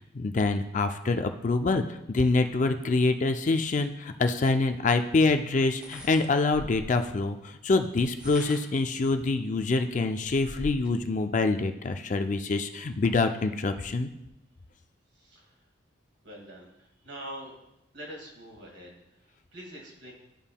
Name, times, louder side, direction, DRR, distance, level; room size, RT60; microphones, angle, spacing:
voice 1, 0.1-14.1, left 3 dB, 40° left, 8 dB, 0.4 m, -26 dB
sound 1, 5.7-7.0 8.0-8.9 9.5-9.6 9.9-11.0, left 1 dB, 5° right, 1.4 m, -43 dB
voice 2, 15.1-15.6 16.2-17.6 17.9-20.1, equal, 65° right, -1 dB, 2.0 m, -45 dB
11.5 x 5.4 x 2.2 m, 0.84 s
head